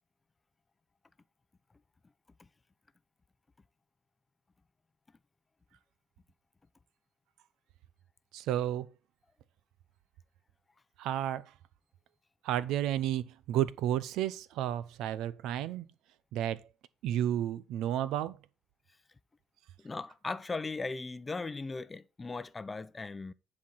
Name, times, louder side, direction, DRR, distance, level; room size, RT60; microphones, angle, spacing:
voice 1, 8.3-8.9 11.0-11.5 12.4-15.8 16.3-16.6 17.0-18.4, right 11 dB, 80° right, 0.6 m, -32 dB
voice 2, 19.8-23.3, left 3 dB, 25° left, 0.6 m, -38 dB
10.0 x 4.3 x 5.5 m
cardioid pair, 85°, 0 cm